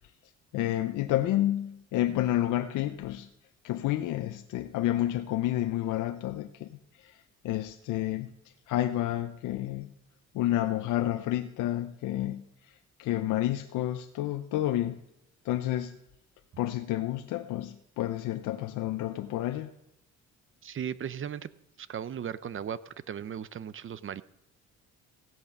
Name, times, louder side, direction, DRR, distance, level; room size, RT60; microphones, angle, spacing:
voice 1, 0.5-3.3 3.6-6.7 7.0-7.2 7.4-8.3 8.7-9.9 10.3-12.4 13.0-15.0 15.4-16.0 16.6-19.7, left 14 dB, 90° left, 0.7 m, -30 dB
voice 2, 20.6-21.5 21.8-24.2, right 8 dB, 45° right, 0.7 m, -37 dB
16.0 x 8.5 x 6.1 m
cardioid pair, 90°, 30 cm